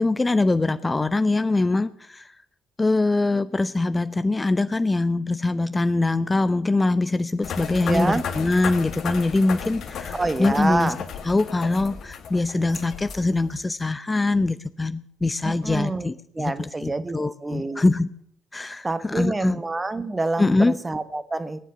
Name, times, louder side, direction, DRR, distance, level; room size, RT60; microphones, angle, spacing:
voice 1, 0.0-2.3 2.8-10.9 11.2-18.1 18.5-19.6 20.4-20.8, left 2 dB, 20° left, 13 dB, 0.7 m, -23 dB
sound 1, 7.4-13.6, left 6 dB, 55° left, 2.0 m, -34 dB
voice 2, 7.8-8.3 10.1-11.0 15.4-16.1 16.3-17.2 17.4-17.8 18.8-21.6, right 2 dB, 20° right, 12 dB, 1.4 m, -27 dB
19.0 x 10.0 x 7.0 m, 0.67 s
figure-of-eight pair, 50°, 0 cm